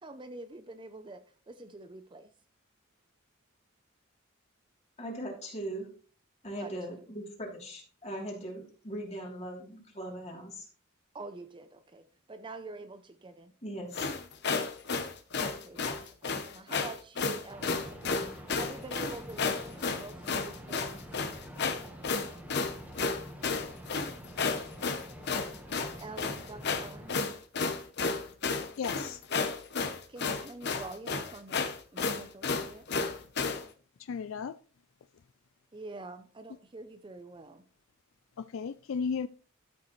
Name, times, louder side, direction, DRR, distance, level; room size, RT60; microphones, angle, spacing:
voice 1, 0.0-2.3 6.6-7.0 11.1-12.0 12.3-13.5 15.4-16.0 16.3-21.0 26.0-27.1 30.1-31.7 31.9-32.8 35.7-37.6, right 2 dB, 25° right, 0.6 m, -46 dB
voice 2, 5.0-5.9 6.4-10.7 13.6-14.1, right 1 dB, 30° left, 3.1 m, -40 dB
sound 1, 13.9-33.6, left 4 dB, 55° left, 1.0 m, -32 dB
sound 2, 17.5-27.2, equal, 10° right, 1.3 m, -47 dB
voice 3, 28.8-29.2 34.0-34.6 38.4-39.3, left 6 dB, 70° left, 0.4 m, -34 dB
12.5 x 6.4 x 3.1 m
head